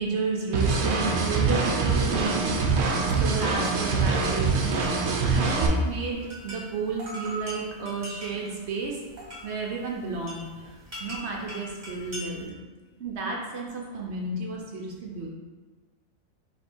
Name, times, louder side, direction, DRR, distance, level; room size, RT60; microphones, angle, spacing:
voice 1, 0.0-2.6 3.2-4.8 5.2-9.0 9.4-12.6 13.0-15.3, right 3 dB, 60° right, -1 dB, 0.9 m, -32 dB
sound 1, 0.5-5.7, right 4 dB, 85° right, 1.0 m, -24 dB
voice 2, 3.0-3.2 10.8-11.0 12.7-13.0, left 7 dB, 80° left, 1 dB, 1.1 m, -66 dB
sound 2, 4.5-12.5, right 1 dB, 35° right, 1.2 m, -41 dB
3.2 x 3.1 x 4.4 m, 1.3 s
omnidirectional pair, 1.4 m